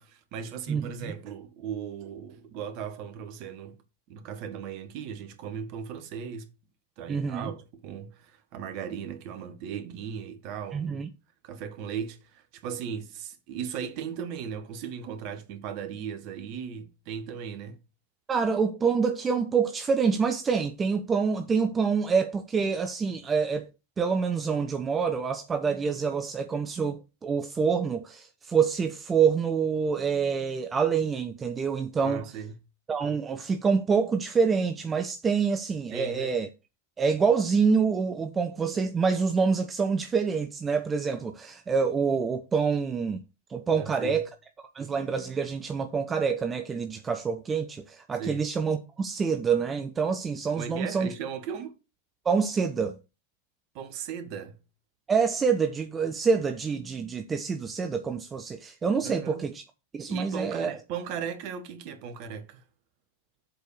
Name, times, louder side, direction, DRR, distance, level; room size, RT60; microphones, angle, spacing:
voice 1, 0.0-3.8 4.1-6.5 7.0-11.0 11.4-17.8 32.0-32.6 35.9-36.3 43.7-44.2 48.2-48.5 50.5-51.7 53.7-54.6 59.0-59.4 60.1-62.6, right 7 dB, 45° right, 1.4 m, -37 dB
voice 2, 0.7-1.2 7.1-7.5 10.7-11.1 18.3-23.7 24.0-32.3 32.9-36.5 37.0-43.2 43.5-44.3 44.6-51.1 52.2-53.0 55.1-59.6 59.9-60.8, right 5 dB, 20° right, 0.7 m, -26 dB
7.7 x 4.6 x 6.6 m
figure-of-eight pair, 90°, 0 cm